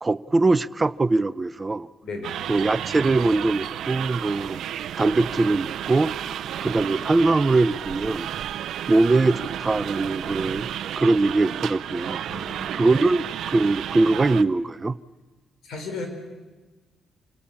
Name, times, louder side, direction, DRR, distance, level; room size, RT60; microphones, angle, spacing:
voice 1, 0.0-1.9 2.5-4.6 5.0-6.1 6.6-8.3 8.9-10.7 11.0-12.4 12.8-15.0, right 3 dB, 25° right, 16 dB, 0.7 m, -22 dB
voice 2, 2.0-2.5 12.3-13.0 15.6-16.1, left 3 dB, 70° left, 5 dB, 5.1 m, -35 dB
sound 1, 2.2-14.4, right 10 dB, 75° right, 0.6 m, -32 dB
sound 2, 6.3-7.6 9.3-10.5, left 1 dB, 35° left, 4.6 m, -50 dB
27.0 x 18.5 x 7.1 m, 1.3 s
cardioid pair, 90°, 0 cm